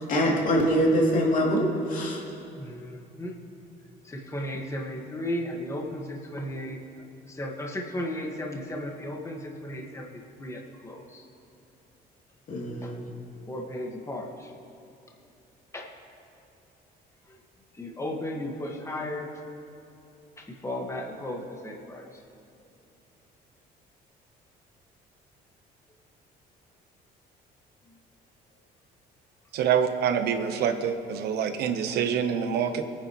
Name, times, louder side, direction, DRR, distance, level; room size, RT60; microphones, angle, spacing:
voice 1, 0.1-2.2 12.5-13.0, equal, 55° left, 2.9 m, -24 dB
voice 2, 2.6-3.4 4.0-6.8 7.3-11.3 12.8-12.9 13.5-14.5 15.7-15.9 17.8-19.3 20.4-22.2, left 1 dB, 15° left, 1.7 m, -35 dB
voice 3, 29.5-32.8, right 8 dB, 75° right, 1.0 m, -26 dB
24.0 x 9.6 x 3.1 m
cardioid pair, 110°, 17 cm